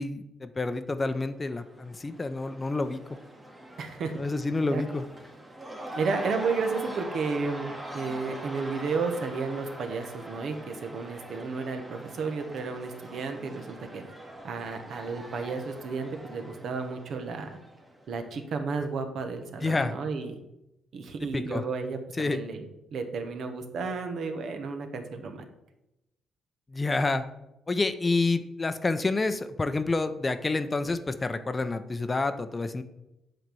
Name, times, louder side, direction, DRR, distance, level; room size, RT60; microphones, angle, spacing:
voice 1, 0.0-3.0 4.2-5.0 19.6-19.9 21.2-21.6 22.2-22.4 26.7-27.2 27.7-32.8, left 3 dB, 25° left, 11 dB, 0.6 m, -28 dB
Cheering / Crowd, 1.3-18.2, right 1 dB, 20° right, 1.5 m, -43 dB
voice 2, 3.8-4.1 4.7-4.8 5.9-14.0 14.4-17.6 18.1-20.4 20.9-25.5, right 4 dB, 65° right, 6 dB, 1.1 m, -32 dB
7.6 x 4.0 x 6.8 m, 0.90 s
cardioid pair, 90°, 0 cm